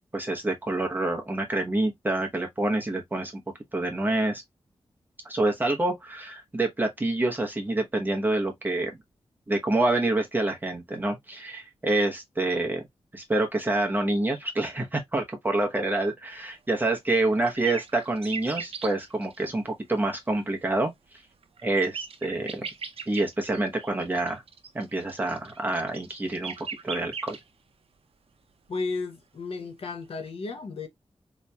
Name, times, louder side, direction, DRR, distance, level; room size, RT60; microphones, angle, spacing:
voice 1, 0.1-3.4 3.7-4.4 5.2-8.9 9.5-12.8 13.1-20.9 21.6-22.7 23.1-24.4 24.7-26.5 26.8-27.4, right 2 dB, 20° right, 0.9 m, -27 dB
sound 1, 16.9-19.5 21.2-27.4 30.3-30.4, right 5 dB, 65° right, 0.6 m, -39 dB
voice 2, 28.7-30.9, left 3 dB, 65° left, 0.8 m, -33 dB
4.0 x 3.0 x 2.3 m
wide cardioid pair, 125°, 10 cm